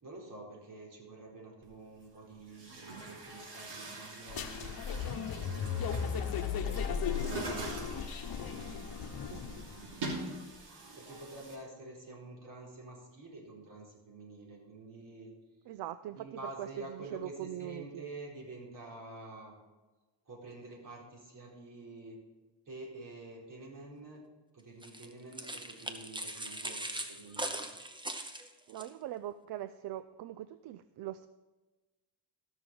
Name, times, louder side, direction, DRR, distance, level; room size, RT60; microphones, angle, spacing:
voice 1, 0.0-4.7 5.4-6.7 8.3-10.3 11.0-15.3 16.2-19.6 20.3-22.2 22.7-24.2 24.5-27.5, right 2 dB, 50° right, -3 dB, 4.3 m, -48 dB
Chatter / Gurgling / Tap, 1.6-1.7 2.4-11.5, right 2 dB, 90° right, 3.1 m, -43 dB
sound 1, 4.3-9.9, left 7 dB, 60° left, 1.0 m, -36 dB
voice 2, 15.7-18.0 28.7-31.3, right 13 dB, 70° right, 13 dB, 0.5 m, -42 dB
sound 2, 24.8-28.9, right 1 dB, 10° right, 0.9 m, -40 dB
14.5 x 6.2 x 5.3 m, 1.2 s
cardioid pair, 100°, 42 cm